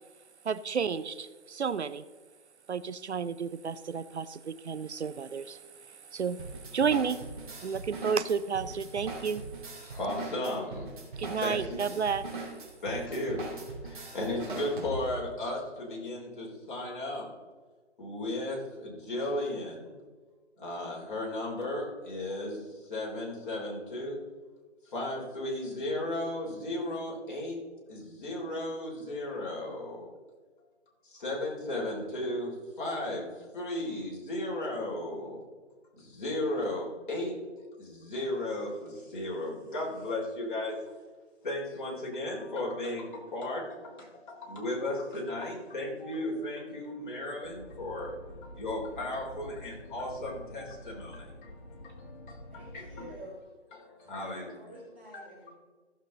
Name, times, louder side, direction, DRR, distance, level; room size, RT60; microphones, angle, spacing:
voice 1, 0.4-2.0 2.7-5.6 6.1-6.4 6.7-7.2 7.6-9.4 11.2-12.3, right 6 dB, 65° right, 15 dB, 0.6 m, -31 dB
sound 1, 6.4-15.3, right 3 dB, 40° right, 2.7 m, -41 dB
voice 2, 9.9-10.9 11.4-11.9 12.8-17.3 18.0-20.0 20.6-24.2 24.9-27.6 27.9-30.1 31.0-35.4 36.0-37.4 37.8-40.8 41.4-53.1 53.7-54.5 55.1-55.2, left 1 dB, 40° left, -3 dB, 3.5 m, -35 dB
sound 2, 47.4-53.2, left 1 dB, 85° left, 1.5 m, -48 dB
voice 3, 52.5-53.4 54.2-55.5, equal, 10° right, -7 dB, 0.6 m, -49 dB
15.0 x 7.2 x 3.8 m, 1.4 s
figure-of-eight pair, 155°, 36 cm